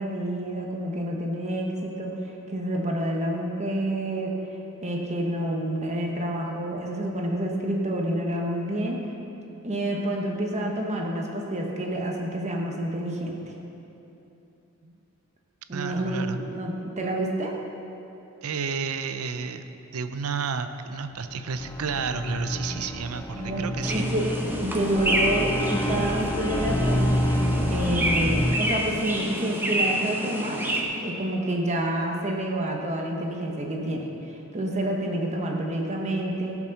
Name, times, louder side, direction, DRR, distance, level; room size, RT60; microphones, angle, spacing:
voice 1, 0.0-2.1 2.5-4.3 4.8-9.0 9.6-13.4 15.7-17.5 23.4-24.3 24.6-30.6 31.0-36.6, right 1 dB, 30° right, 0 dB, 1.1 m, -28 dB
voice 2, 15.7-16.4 18.4-19.7 19.9-24.1, right 5 dB, 90° right, 9 dB, 0.6 m, -31 dB
sound 1, 21.1-28.6, left 1 dB, 15° left, 0.7 m, -28 dB
sound 2, 23.8-30.8, right 1 dB, 10° right, 1.1 m, -28 dB
16.5 x 6.1 x 5.8 m, 2.9 s
head